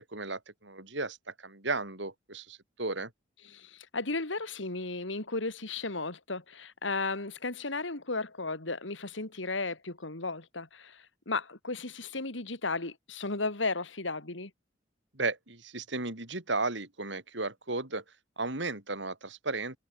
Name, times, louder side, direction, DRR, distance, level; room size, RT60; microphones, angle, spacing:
voice 1, 0.0-3.1 15.1-18.0 18.4-19.8, right 3 dB, 65° right, 4.3 m, -34 dB
voice 2, 3.4-14.5, left 3 dB, 75° left, 2.7 m, -35 dB
head